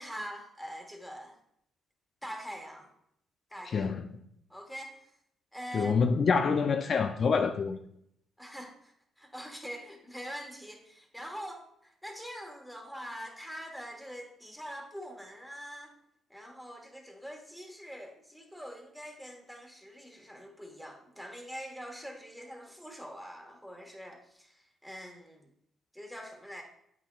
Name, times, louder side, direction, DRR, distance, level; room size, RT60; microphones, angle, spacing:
voice 1, 0.0-1.4 2.2-2.9 3.5-3.9 4.5-5.1 5.5-6.0 8.4-15.9 16.3-25.5 25.9-26.6, equal, ahead, 1.4 m, -44 dB
voice 2, 3.7-4.1 5.7-7.8, left 5 dB, 50° left, 0.4 m, -26 dB
8.2 x 6.0 x 2.4 m
cardioid pair, 90°, 0 cm